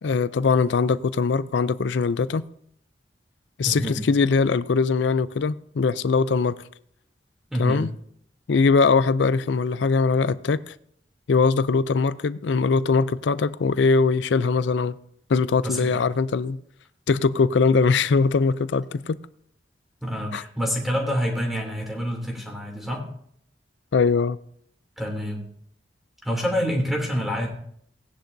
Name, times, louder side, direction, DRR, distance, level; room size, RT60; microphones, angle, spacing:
voice 1, 0.0-2.4 3.6-6.6 7.6-7.9 8.5-10.7 11.3-14.9 15.3-16.6 17.1-19.2 20.3-20.4 23.9-24.4, left 4 dB, 80° left, 0.4 m, -21 dB
voice 2, 3.6-4.0 7.5-7.8 15.6-15.9 20.0-23.0 25.0-25.5 26.2-27.5, equal, ahead, 2.8 m, -27 dB
17.5 x 10.5 x 2.7 m
head